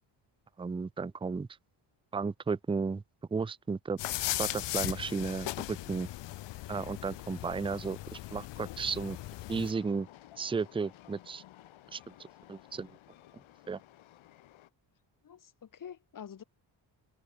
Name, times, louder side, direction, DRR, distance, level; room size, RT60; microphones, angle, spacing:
voice 1, 0.6-1.5 2.1-3.0 3.3-4.0 4.4-6.1 6.7-9.2 9.5-10.1 10.4-11.4 11.9-12.1 12.5-13.0 13.7-13.8, right 5 dB, 10° right, 0.5 m, -34 dB
sound 1, 4.0-9.7, left 16 dB, 60° left, 0.7 m, -38 dB
Train, 9.0-14.7, left 14 dB, 80° left, 2.5 m, -56 dB
voice 2, 15.2-16.4, left 8 dB, 40° left, 3.4 m, -47 dB
cardioid pair, 140°, 47 cm